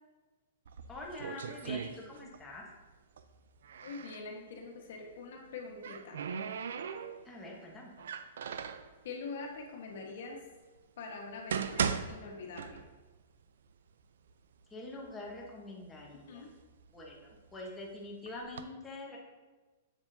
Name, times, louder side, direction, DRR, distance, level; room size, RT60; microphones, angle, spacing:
sound 1, 0.6-2.5 2.8-4.3 5.4-7.4 8.0-8.9 9.7-9.8 10.4-10.5 11.2-13.2 13.5-13.6 14.3-14.4 14.8-15.4 15.9-17.6 18.3-18.6, right 7 dB, 75° right, 0.4 m, -38 dB
voice 1, 0.9-2.7 7.2-7.9 14.7-16.5 16.9-19.2, left 2 dB, 10° left, -3 dB, 1.0 m, -45 dB
voice 2, 3.8-6.2 9.0-10.4 11.0-12.8 16.3-16.5, left 4 dB, 60° left, 0 dB, 1.3 m, -44 dB
7.5 x 7.0 x 2.7 m, 1.2 s
hypercardioid pair, 170°, 0 cm